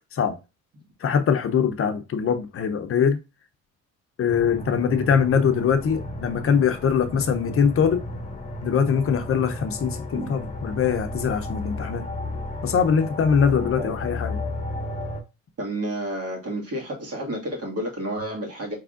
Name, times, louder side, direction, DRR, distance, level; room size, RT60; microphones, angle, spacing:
voice 1, 1.0-3.2 4.2-8.0 8.6-12.0 12.6-14.4, left 7 dB, 50° left, 0.6 m, -22 dB
sound 1, 4.3-15.2, left 1 dB, 25° left, 0.9 m, -33 dB
voice 2, 13.6-13.9 15.6-18.7, right 1 dB, 50° right, 1.9 m, -30 dB
4.8 x 3.4 x 2.4 m
cardioid pair, 90°, 30 cm